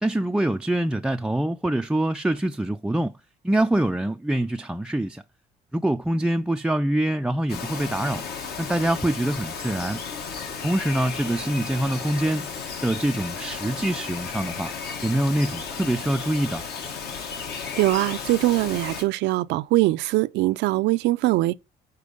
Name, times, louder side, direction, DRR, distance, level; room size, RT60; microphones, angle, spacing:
voice 1, 0.0-3.1 3.4-5.2 5.7-8.2 8.6-10.0 10.6-12.5 12.8-14.7 15.0-16.6, right 1 dB, 5° right, 0.3 m, -25 dB
Bird vocalization bird call bird song, 7.5-19.0, left 5 dB, 65° left, 1.8 m, -34 dB
voice 2, 17.5-21.6, right 18 dB, 85° right, 0.4 m, -22 dB
6.8 x 4.3 x 4.9 m
cardioid pair, 110°, 18 cm